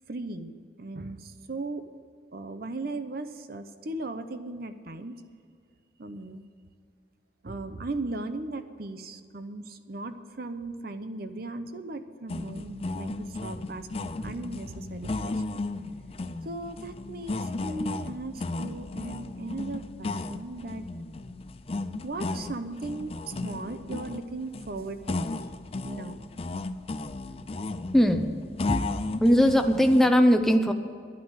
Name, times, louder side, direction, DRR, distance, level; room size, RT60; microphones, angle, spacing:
voice 1, 0.1-1.8 2.3-5.2 6.0-6.4 7.4-15.6 16.4-20.9 22.0-25.2 25.8-26.2, right 2 dB, 55° right, 10 dB, 0.8 m, -37 dB
sound 1, 12.3-30.1, left 2 dB, 35° left, 0.5 m, -35 dB
voice 2, 27.9-28.3 28.7-30.7, equal, ahead, 5 dB, 0.7 m, -20 dB
11.0 x 9.4 x 8.1 m, 2.2 s
head